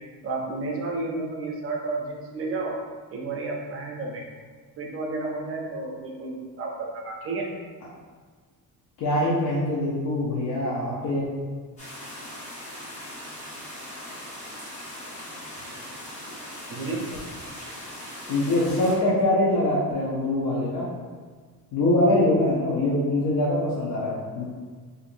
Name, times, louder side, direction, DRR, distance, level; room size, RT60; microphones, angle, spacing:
voice 1, 0.2-2.8 3.1-4.2 4.8-7.5 16.7-17.1, right 3 dB, 35° right, -1 dB, 0.5 m, -31 dB
voice 2, 9.0-11.3 18.3-20.9 21.7-24.4, left 1 dB, 55° left, -6 dB, 0.6 m, -23 dB
sound 1, 11.8-18.9, left 1 dB, 20° left, 0.8 m, -39 dB
4.3 x 2.5 x 2.5 m, 1.5 s
cardioid pair, 175°, 39 cm